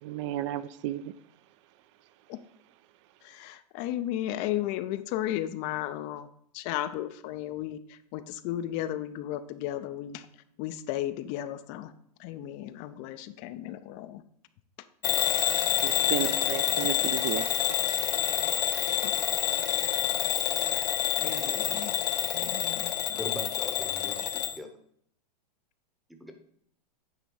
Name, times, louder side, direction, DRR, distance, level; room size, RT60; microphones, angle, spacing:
voice 1, 0.0-1.1 15.8-17.5, right 12 dB, 45° right, 0.5 m, -33 dB
voice 2, 3.2-6.3 6.5-7.8 8.1-10.2 10.6-11.9 12.2-14.2 19.0-19.1 20.7-20.8 21.2-22.0 22.3-23.2, left 13 dB, 35° left, 0.4 m, -34 dB
Bell / Alarm, 15.0-24.6, left 11 dB, 70° left, 0.9 m, -28 dB
voice 3, 23.2-24.8 26.1-26.3, left 1 dB, ahead, 0.8 m, -40 dB
9.2 x 3.4 x 5.4 m
hypercardioid pair, 140°, 21 cm